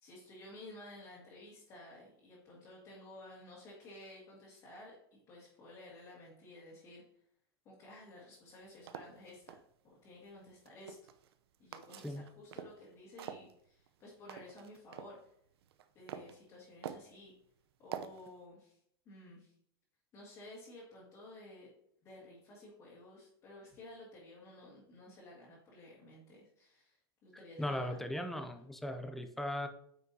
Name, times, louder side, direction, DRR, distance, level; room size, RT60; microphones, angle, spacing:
voice 1, 0.0-7.0 7.7-9.6 9.8-11.0 11.6-15.2 15.9-17.3 17.8-18.8 19.1-19.5 20.1-21.7 22.0-27.0 27.2-28.4, left 1 dB, 25° left, -7 dB, 1.9 m, -54 dB
sound 1, 8.5-9.6 10.5-11.3 11.7-12.8 13.2-15.1 15.6-16.4 16.8-17.2 17.9-18.3, right 9 dB, 90° right, 0.7 m, -46 dB
voice 2, 27.6-29.7, left 1 dB, ahead, 6 dB, 0.4 m, -38 dB
9.3 x 6.0 x 2.7 m, 0.71 s
supercardioid pair, 170°, 13 cm